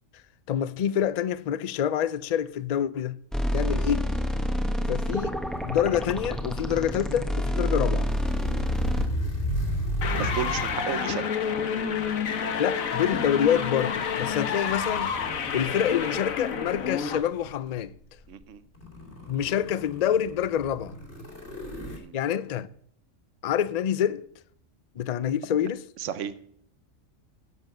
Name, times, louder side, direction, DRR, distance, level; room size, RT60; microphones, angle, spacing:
voice 1, 0.5-3.2 3.5-4.1 4.9-5.4 5.6-8.1 12.6-15.1 15.5-17.9 19.3-21.0 22.1-22.7 23.4-24.3 25.0-25.8, left 9 dB, 70° left, 0.3 m, -26 dB
sound 1, 3.3-9.1, equal, ahead, 1.1 m, -28 dB
sound 2, 5.5-11.0 11.8-12.0 13.9-17.7 18.3-18.4 18.7-22.0, equal, 55° left, 3.2 m, -35 dB
sound 3, 10.0-17.2, left 6 dB, 85° left, 1.5 m, -29 dB
voice 2, 10.1-11.3 18.3-18.6 21.9-22.2 26.0-26.3, right 9 dB, 65° right, 1.1 m, -33 dB
11.0 x 7.8 x 6.1 m
omnidirectional pair, 1.4 m